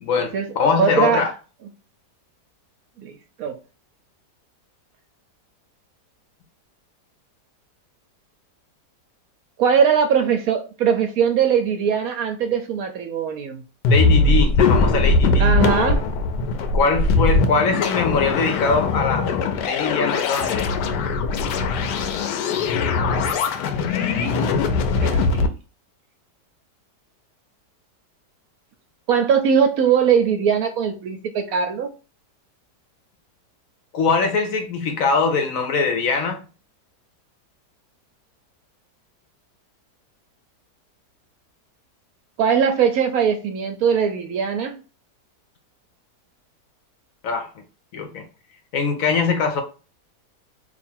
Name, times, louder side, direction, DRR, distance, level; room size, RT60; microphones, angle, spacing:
voice 1, 0.0-1.3 13.9-15.5 16.7-19.3 19.6-20.7 33.9-36.4 47.2-47.5 47.9-48.2 48.7-49.6, left 4 dB, 65° left, 0.9 m, -22 dB
voice 2, 0.8-1.3 3.0-3.6 9.6-13.6 15.4-16.1 25.0-25.5 29.1-31.9 42.4-44.8, right 7 dB, 70° right, 0.9 m, -20 dB
sound 1, 13.8-25.5, left 3 dB, 80° left, 1.2 m, -20 dB
2.9 x 2.4 x 4.3 m
omnidirectional pair, 1.8 m